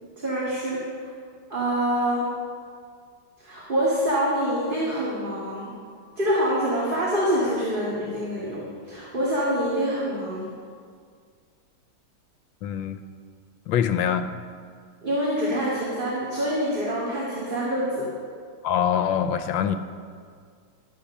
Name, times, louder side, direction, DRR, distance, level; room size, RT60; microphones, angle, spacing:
voice 1, 0.2-0.8 1.5-2.3 3.4-5.7 6.2-10.5 15.0-18.1, equal, 25° right, -7 dB, 2.0 m, -25 dB
voice 2, 12.6-13.0 13.7-14.3 18.6-19.8, left 8 dB, 90° left, 10 dB, 1.4 m, -24 dB
12.0 x 7.0 x 7.0 m, 2.1 s
omnidirectional pair, 2.0 m